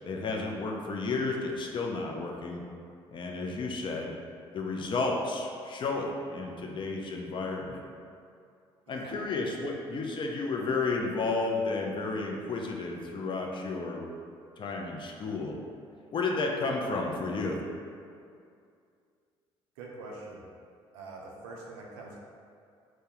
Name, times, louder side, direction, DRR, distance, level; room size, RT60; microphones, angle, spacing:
voice 1, 0.1-2.6 3.1-4.1 4.5-7.8 8.9-14.0 14.6-15.5 16.1-17.6, left 3 dB, 40° left, 0 dB, 0.4 m, -32 dB
voice 2, 19.8-20.4 20.9-22.2, right 3 dB, 85° right, -2 dB, 0.4 m, -44 dB
2.2 x 2.0 x 2.9 m, 2.3 s
hypercardioid pair, 60°, 13 cm